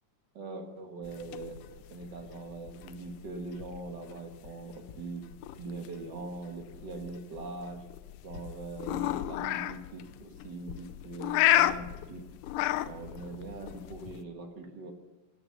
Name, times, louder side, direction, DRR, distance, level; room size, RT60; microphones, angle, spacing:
voice 1, 0.3-1.6 1.9-5.2 5.6-7.8 8.2-12.3 12.9-14.9, right 3 dB, 45° right, 4 dB, 1.5 m, -42 dB
sound 1, 1.0-14.2, left 14 dB, 80° left, 2.1 m, -33 dB
15.0 x 9.0 x 6.8 m, 1.1 s
omnidirectional pair, 3.8 m